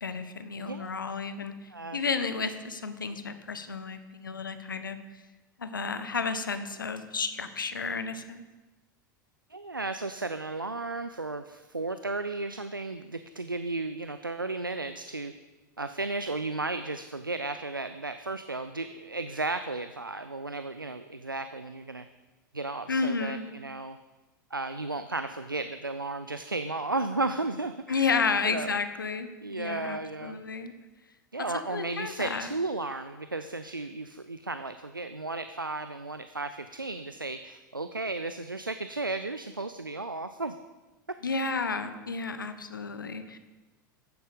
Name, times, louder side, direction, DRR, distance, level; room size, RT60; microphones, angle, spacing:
voice 1, 0.0-5.0 5.6-8.4 22.9-23.5 27.9-30.7 31.5-32.5 41.2-43.4, left 4 dB, 80° left, 10 dB, 1.1 m, -32 dB
voice 2, 0.6-1.0 1.7-2.0 9.5-15.3 15.8-22.1 22.5-24.0 24.5-28.2 28.4-28.8 29.4-30.4 31.3-40.6 41.3-41.5, right 3 dB, 90° right, 10 dB, 0.5 m, -34 dB
15.0 x 10.5 x 5.2 m, 1.2 s
figure-of-eight pair, 85°, 11 cm